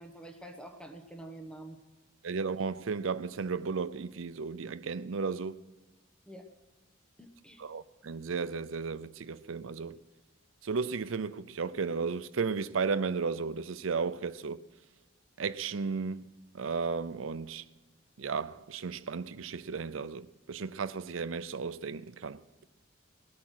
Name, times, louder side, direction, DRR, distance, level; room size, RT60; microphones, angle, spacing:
voice 1, 0.0-1.8 6.3-6.5 7.2-7.6, right 1 dB, 5° left, 1.1 m, -47 dB
voice 2, 2.2-5.6 7.6-10.0 10.6-14.6 15.4-17.6 18.2-22.4, right 5 dB, 90° right, 0.6 m, -34 dB
20.0 x 8.6 x 6.3 m
head